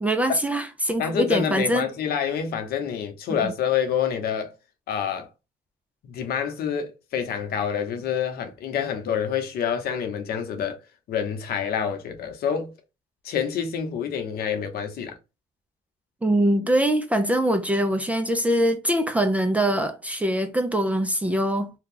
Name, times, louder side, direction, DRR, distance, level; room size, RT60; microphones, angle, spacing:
voice 1, 0.0-1.8 3.4-3.5 16.2-21.7, right 1 dB, 10° right, 0.5 m, -23 dB
voice 2, 1.0-4.5 4.9-5.3 6.0-10.8 11.1-12.7 13.2-15.1, left 8 dB, 65° left, 0.9 m, -27 dB
2.8 x 2.3 x 3.7 m
cardioid pair, 110°, 17 cm